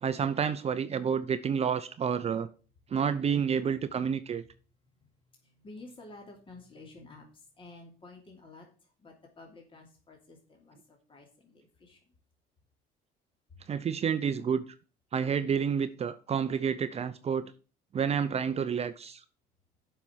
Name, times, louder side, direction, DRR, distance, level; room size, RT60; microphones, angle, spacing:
voice 1, 0.0-2.5 2.9-4.4 13.7-14.6 15.1-17.5 17.9-19.2, right 7 dB, 40° right, 11 dB, 0.7 m, -29 dB
voice 2, 5.4-12.0 14.2-14.5, left 2 dB, 30° left, 1 dB, 2.8 m, -52 dB
7.6 x 5.6 x 7.2 m, 0.36 s
cardioid pair, 110°, 17 cm